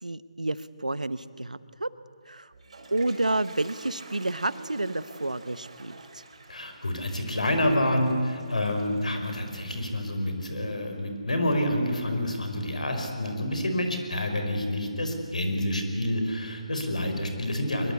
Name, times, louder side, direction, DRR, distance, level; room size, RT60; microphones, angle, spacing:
voice 1, 0.0-1.9 2.3-2.5 2.9-6.2, right 2 dB, 90° right, 16 dB, 1.0 m, -30 dB
Toilet flush, 2.2-11.1, right 3 dB, 60° right, 4.4 m, -49 dB
voice 2, 6.5-17.9, left 1 dB, 75° left, 5 dB, 4.9 m, -28 dB
23.0 x 22.0 x 8.3 m, 2.1 s
figure-of-eight pair, 150°, 4 cm